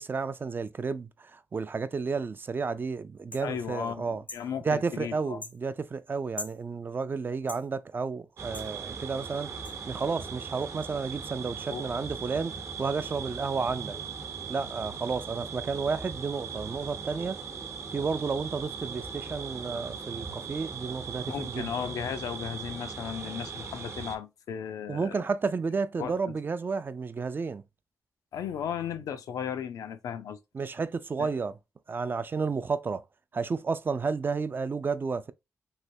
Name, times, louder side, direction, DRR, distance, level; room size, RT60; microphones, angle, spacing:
voice 1, 0.0-4.2 4.6-9.5 9.9-14.0 14.5-17.4 17.9-21.7 24.9-27.6 30.5-31.6 31.9-33.0 33.3-35.3, right 4 dB, 35° right, 0.3 m, -31 dB
sound 1, 3.3-3.5 4.3-4.5 5.4-5.6 6.4-6.6 7.5-7.7 8.5-8.7 9.6-9.8, left 2 dB, 25° left, 0.5 m, -40 dB
voice 2, 3.4-5.4 11.7-11.9 21.3-25.2 26.0-26.4 28.3-30.4 31.2-31.3, left 8 dB, 85° left, 0.4 m, -35 dB
sound 2, 8.4-24.2, right 5 dB, 55° right, 0.8 m, -39 dB
3.2 x 2.8 x 2.6 m
cardioid pair, 70°, 6 cm